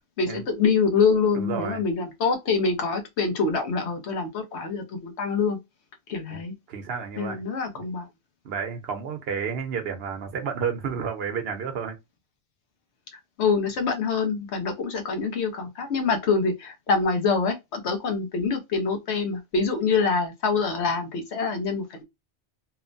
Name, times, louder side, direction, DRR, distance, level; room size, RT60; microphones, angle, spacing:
voice 1, 0.2-5.6 6.1-6.5 7.2-8.1 13.1-22.0, left 5 dB, 75° left, 1.0 m, -25 dB
voice 2, 1.4-1.8 6.3-6.4 6.7-7.4 7.8-7.9 8.4-12.0, right 6 dB, 65° right, 0.9 m, -31 dB
3.0 x 2.1 x 2.5 m
omnidirectional pair, 1.2 m